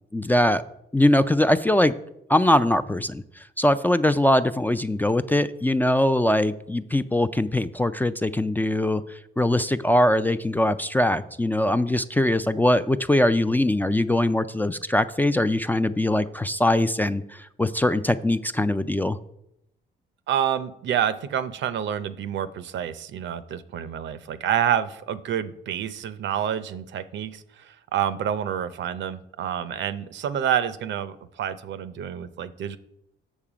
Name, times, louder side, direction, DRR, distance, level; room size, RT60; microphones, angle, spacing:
voice 1, 0.1-0.6 0.9-1.9 2.3-9.0 9.4-19.2, left 1 dB, 10° left, 11 dB, 0.3 m, -22 dB
voice 2, 20.3-32.8, right 9 dB, 65° right, 13 dB, 0.6 m, -28 dB
7.2 x 6.6 x 5.0 m, 0.79 s
cardioid pair, 90°, 20 cm